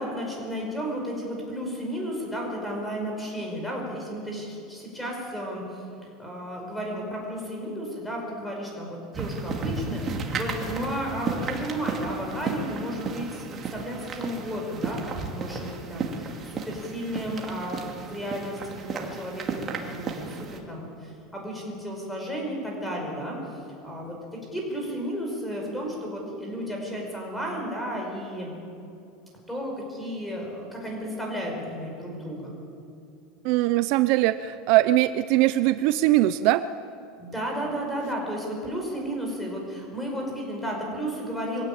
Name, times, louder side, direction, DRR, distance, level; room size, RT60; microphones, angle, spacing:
voice 1, 0.0-28.5 29.5-32.5 37.2-41.6, equal, 5° left, -1 dB, 5.6 m, -33 dB
sound 1, 9.1-20.6, right 4 dB, 25° right, 2.3 m, -34 dB
voice 2, 33.4-36.6, right 16 dB, 50° right, 13 dB, 0.6 m, -21 dB
23.0 x 17.0 x 8.9 m, 2.6 s
supercardioid pair, 160°, 0 cm